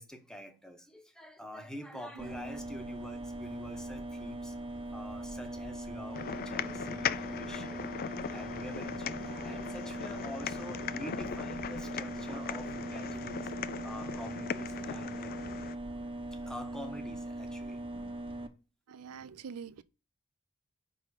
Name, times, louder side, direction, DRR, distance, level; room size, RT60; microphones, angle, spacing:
voice 1, 0.0-4.6 4.9-7.9 8.2-13.5 13.8-15.3 16.3-18.2, left 1 dB, 5° left, 1.0 m, -46 dB
sound 1, 2.2-18.5, right 1 dB, 25° right, 0.7 m, -40 dB
sound 2, 6.1-15.7, left 8 dB, 45° left, 0.3 m, -39 dB
voice 2, 9.3-9.7 18.9-19.8, right 6 dB, 85° right, 0.5 m, -46 dB
5.5 x 5.1 x 6.4 m
head